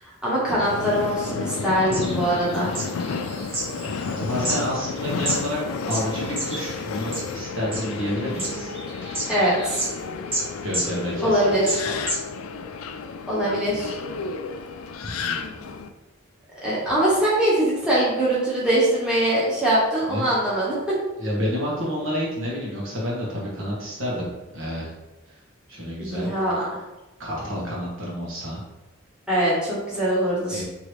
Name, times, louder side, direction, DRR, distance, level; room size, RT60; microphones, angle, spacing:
voice 1, 0.2-2.8 9.3-9.8 11.2-11.9 13.3-13.9 16.6-21.0 26.0-26.7 29.3-30.6, right 1 dB, 5° right, -8 dB, 1.2 m, -22 dB
Subway metro underground, 0.6-15.9, left 5 dB, 80° left, 0.4 m, -31 dB
sound 1, 1.6-5.4 5.9-7.3 7.7-9.9 10.3-10.5 10.7-12.2, right 1 dB, 30° right, 1.1 m, -31 dB
voice 2, 3.8-5.6 5.9-8.7 10.6-12.0 15.0-15.7 20.1-20.3 21.2-24.3 24.5-24.9 25.3-25.4 25.7-26.4 27.2-28.6 30.5-30.6, equal, 70° right, -4 dB, 1.4 m, -30 dB
4.6 x 3.0 x 3.2 m, 1.0 s
head